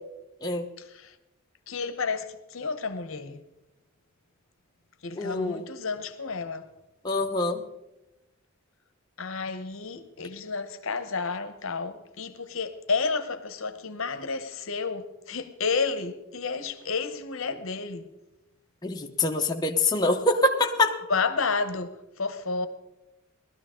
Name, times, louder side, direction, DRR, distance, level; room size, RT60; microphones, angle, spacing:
voice 1, 0.8-1.2 1.7-3.4 5.0-6.7 9.2-18.1 21.1-22.7, left 4 dB, 70° left, 0.9 m, -31 dB
voice 2, 5.2-5.6 7.0-7.6 18.8-21.0, left 2 dB, 20° left, 0.9 m, -25 dB
19.5 x 13.0 x 3.7 m
head